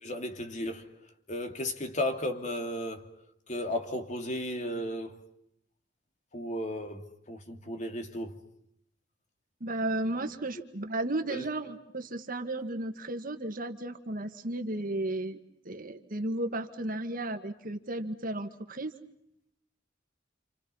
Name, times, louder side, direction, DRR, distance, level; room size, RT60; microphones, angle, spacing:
voice 1, 0.0-0.9 1.3-3.1 3.5-5.2 6.3-8.3 11.3-11.4, left 1 dB, 40° left, 2.8 m, -34 dB
voice 2, 9.6-15.4 15.7-18.9, right 2 dB, 50° right, 1.9 m, -34 dB
29.5 x 28.0 x 5.6 m
head